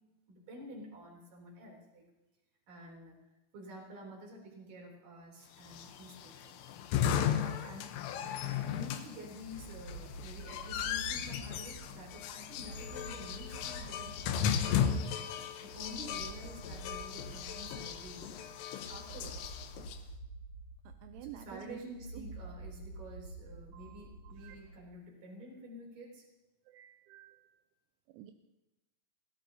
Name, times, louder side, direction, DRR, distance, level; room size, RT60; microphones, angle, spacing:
voice 1, 0.3-2.0 2.7-3.2 3.5-7.9 8.6-15.0 15.6-19.5 21.2-26.3, equal, 45° right, -1 dB, 4.5 m, -50 dB
sound 1, 5.7-20.0, left 8 dB, 85° left, 3.5 m, -36 dB
sound 2, 9.4-24.9, right 2 dB, 35° left, 3.5 m, -49 dB
voice 2, 21.0-22.3 23.7-24.0 24.4-24.6 26.7-27.5 28.1-28.3, right 11 dB, 85° right, 6 dB, 3.1 m, -49 dB
24.0 x 17.0 x 2.8 m, 1.0 s
omnidirectional pair, 5.7 m